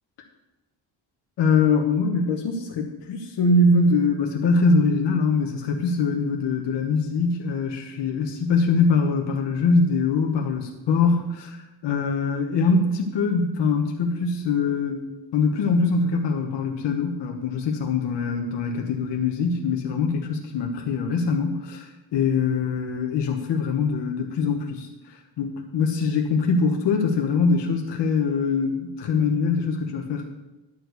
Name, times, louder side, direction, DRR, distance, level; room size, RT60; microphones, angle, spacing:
voice 1, 1.4-15.1 15.3-30.3, left 4 dB, 75° left, 2 dB, 1.2 m, -23 dB
11.0 x 4.8 x 8.0 m, 1.0 s
wide cardioid pair, 150°, 42 cm